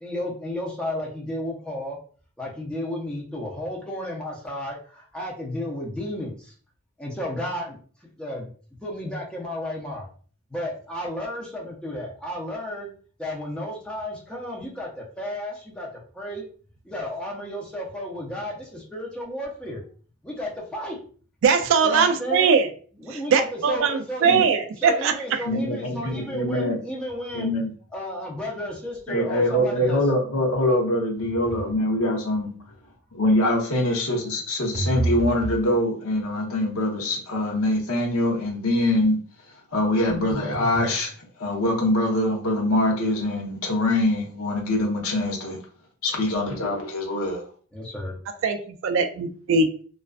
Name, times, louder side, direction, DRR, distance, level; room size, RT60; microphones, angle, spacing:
voice 1, 0.0-2.0 2.4-6.5 7.0-7.8 8.2-8.5 8.8-10.1 10.5-12.9 13.2-15.9 16.1-16.4 16.8-19.8 20.2-21.0 21.8-22.5 23.0-24.5 24.8-27.5 27.9-30.0 47.7-48.1, left 1 dB, 5° left, -4 dB, 0.5 m, -33 dB
voice 2, 21.4-22.7 23.1-25.1 48.4-49.7, right 5 dB, 60° right, 8 dB, 0.3 m, -21 dB
voice 3, 25.5-26.8 27.3-27.7 29.1-32.5 33.1-39.2 39.7-41.1 41.4-45.6 46.0-47.4, left 1 dB, 75° left, 0 dB, 0.7 m, -24 dB
sound 1, 34.7-35.6 40.1-41.0, right 2 dB, 40° right, 0.8 m, -28 dB
2.4 x 2.2 x 2.3 m, 0.43 s
head